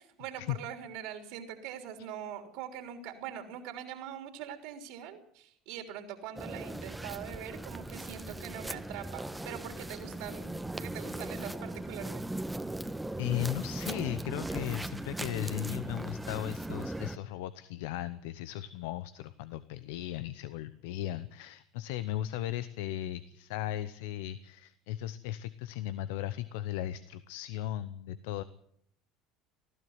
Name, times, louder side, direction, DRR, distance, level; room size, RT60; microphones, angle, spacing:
voice 1, 0.0-12.4, right 9 dB, 70° right, 6 dB, 3.4 m, -43 dB
sound 1, 6.4-17.2, right 1 dB, 10° right, 1.3 m, -38 dB
voice 2, 13.2-28.4, left 13 dB, 75° left, 15 dB, 0.9 m, -37 dB
19.5 x 14.5 x 9.6 m, 0.68 s
hypercardioid pair, 75°, 0 cm